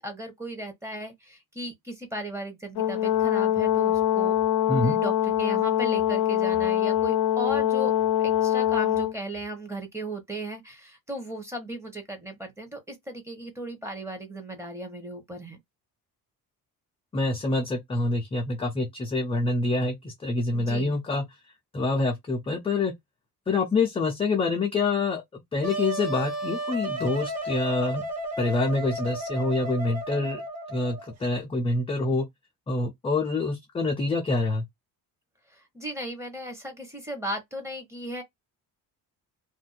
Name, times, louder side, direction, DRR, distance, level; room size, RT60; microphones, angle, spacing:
voice 1, 0.0-4.4 4.7-15.6 20.5-21.0 35.5-38.2, right 1 dB, 5° right, 0.9 m, -36 dB
Brass instrument, 2.8-9.1, left 11 dB, 85° left, 0.6 m, -24 dB
voice 2, 4.7-5.0 17.1-21.2 21.7-22.9 23.5-28.0 28.4-30.4 30.7-32.2 32.7-34.6, left 2 dB, 15° left, 0.4 m, -26 dB
Wind instrument woodwind instrument, 25.6-31.1, right 1 dB, 45° right, 0.9 m, -33 dB
2.5 x 2.2 x 3.9 m
cardioid pair, 155°, 37 cm